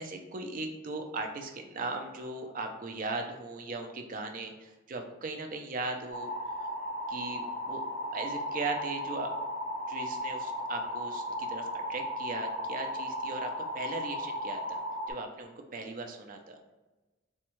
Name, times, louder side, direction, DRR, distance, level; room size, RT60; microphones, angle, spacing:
voice 1, 0.0-6.3 6.6-6.7 7.1-7.8 8.1-9.3 9.9-14.8 15.1-16.6, right 3 dB, 40° right, 4 dB, 0.4 m, -38 dB
sound 1, 6.1-15.1, equal, 30° left, 1.0 m, -35 dB
4.2 x 2.3 x 3.0 m, 1.1 s
head